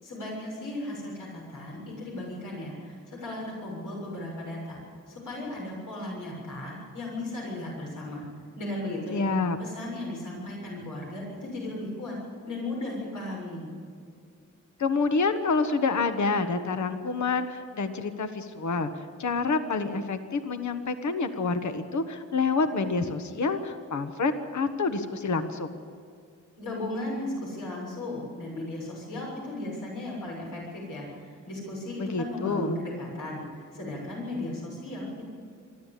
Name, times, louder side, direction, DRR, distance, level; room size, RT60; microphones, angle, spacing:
voice 1, 0.0-4.8 5.1-8.2 8.6-9.3 9.6-12.2 12.4-13.7 26.6-35.2, left 1 dB, 85° left, -3 dB, 7.0 m, -36 dB
voice 2, 9.1-9.6 14.8-18.9 19.2-25.8 32.0-32.8, left 4 dB, 65° left, 8 dB, 1.4 m, -28 dB
23.5 x 14.5 x 8.4 m, 2.3 s
cardioid pair, 90°, 31 cm